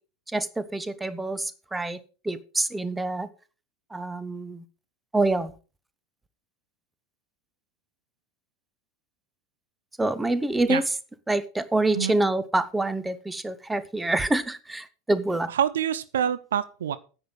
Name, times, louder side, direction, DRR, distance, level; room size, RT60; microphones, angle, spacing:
voice 1, 0.3-2.0 2.2-3.3 3.9-4.6 5.1-5.5 10.0-10.8 11.3-15.5, right 2 dB, 10° right, 14 dB, 1.0 m, -26 dB
voice 2, 15.5-17.0, right 9 dB, 70° right, 14 dB, 0.8 m, -26 dB
10.0 x 8.9 x 5.0 m, 0.35 s
figure-of-eight pair, 80°, 0 cm